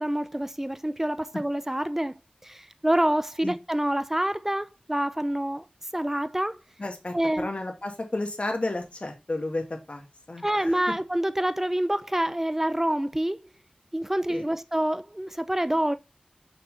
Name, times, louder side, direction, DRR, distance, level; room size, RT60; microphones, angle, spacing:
voice 1, 0.0-2.1 2.4-5.6 5.9-6.6 7.1-7.5 10.4-13.4 13.9-16.0, right 1 dB, 15° right, 0.6 m, -27 dB
voice 2, 6.8-10.8 14.3-14.4, left 2 dB, 50° left, 1.7 m, -32 dB
6.9 x 5.8 x 3.3 m
wide cardioid pair, 65°, 3 cm